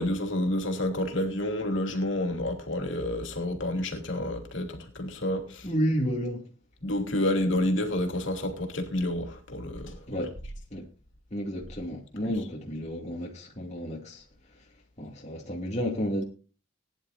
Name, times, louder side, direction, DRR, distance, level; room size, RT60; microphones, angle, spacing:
voice 1, 0.0-5.7 6.8-10.2 12.2-12.4, left 1 dB, 60° left, 2.9 m, -29 dB
voice 2, 5.6-6.4 10.1-10.3 10.7-10.9 11.3-14.2 15.0-16.2, equal, 35° left, 2.4 m, -31 dB
20.0 x 10.5 x 2.6 m
head